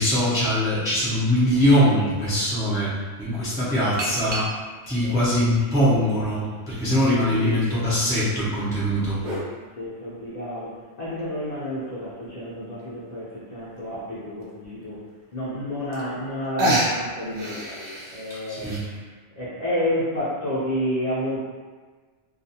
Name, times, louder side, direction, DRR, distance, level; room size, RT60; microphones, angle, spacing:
voice 1, 0.0-2.9 3.2-4.5 4.9-9.2 18.5-18.8, equal, 5° right, -9 dB, 0.5 m, -22 dB
sound 1, 2.2-2.3 4.0-4.9 5.6-6.6 7.2-7.3 8.5-9.5 11.2-11.3 11.8-11.9 12.0-12.1 12.5-12.8 13.8-13.9 14.4-14.5 15.6-15.7 15.9-16.3 16.6-18.8, right 1 dB, 60° right, 0.7 m, -29 dB
voice 2, 3.5-4.1 5.0-5.1 5.7-6.1 7.3-8.4 9.2-9.5 9.8-15.0 15.3-19.0 19.4-21.4, equal, 45° left, -10 dB, 0.7 m, -30 dB
2.4 x 2.4 x 2.7 m, 1.4 s
omnidirectional pair, 1.1 m